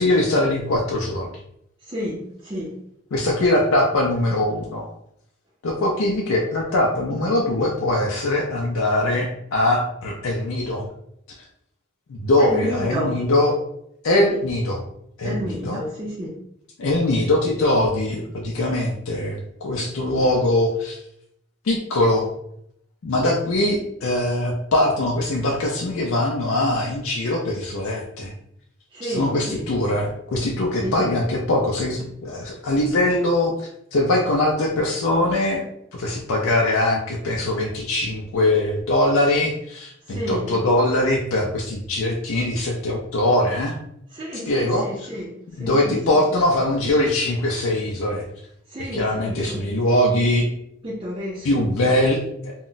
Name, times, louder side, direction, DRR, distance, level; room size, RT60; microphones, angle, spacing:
voice 1, 0.0-1.3 3.1-4.9 5.6-10.8 12.1-13.6 14.0-14.8 15.2-15.8 16.8-21.0 21.6-22.3 23.0-28.3 29.0-35.6 35.9-43.7 44.5-44.8 45.6-48.2 48.8-50.5 51.4-52.7, left 1 dB, 85° left, -1 dB, 0.4 m, -22 dB
voice 2, 1.8-2.8 12.4-13.2 14.2-14.4 15.2-16.4 28.9-29.7 30.8-31.1 40.1-40.5 44.1-46.4 48.7-49.6 50.8-51.9, equal, 25° right, -7 dB, 0.4 m, -31 dB
2.2 x 2.0 x 3.8 m, 0.73 s
head